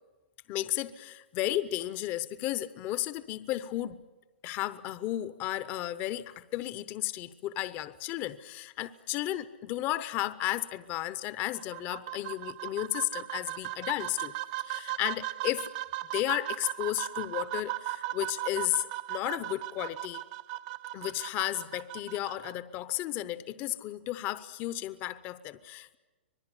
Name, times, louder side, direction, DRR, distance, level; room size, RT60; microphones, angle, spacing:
voice 1, 0.5-4.0 4.4-15.7 16.1-20.2 20.9-26.0, left 15 dB, 35° left, 14 dB, 0.8 m, -33 dB
sound 1, 11.5-22.5, right 16 dB, 45° right, 0.7 m, -37 dB
25.5 x 20.0 x 9.8 m, 1.2 s
hypercardioid pair, 135°, 6 cm